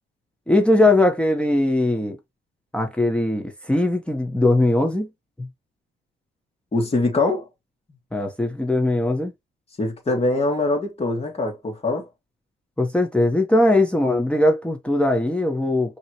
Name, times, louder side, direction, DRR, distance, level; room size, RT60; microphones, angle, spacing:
voice 1, 0.5-2.2 2.7-5.1 5.4-5.5 8.1-9.3 12.8-16.0, left 1 dB, 5° left, 1.3 m, -20 dB
voice 2, 6.7-7.5 9.8-12.1, left 2 dB, 30° left, 2.8 m, -23 dB
5.3 x 3.2 x 3.1 m
cardioid pair, 85°, 20 cm